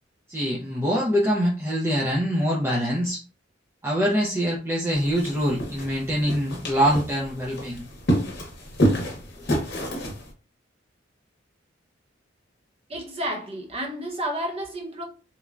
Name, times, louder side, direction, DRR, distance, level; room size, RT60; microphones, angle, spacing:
voice 1, 0.3-3.2 3.8-7.9, equal, 15° right, 0.4 m, -24 dB
sound 1, 4.9-10.3, equal, 60° left, 0.9 m, -28 dB
voice 2, 12.9-15.0, right 1 dB, 30° right, 0.8 m, -31 dB
3.1 x 2.1 x 2.4 m
head